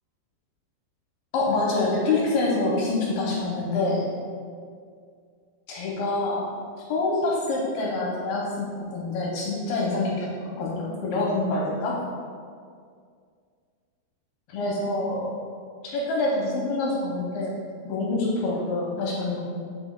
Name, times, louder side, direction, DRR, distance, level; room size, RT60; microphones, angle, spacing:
voice 1, 1.3-4.1 5.7-6.4 6.9-8.7 8.9-10.3 10.6-12.0 14.5-15.3 15.8-17.5 17.9-19.4, left 2 dB, 75° left, -4 dB, 2.4 m, -26 dB
8.3 x 6.0 x 2.3 m, 2.1 s
omnidirectional pair, 5.0 m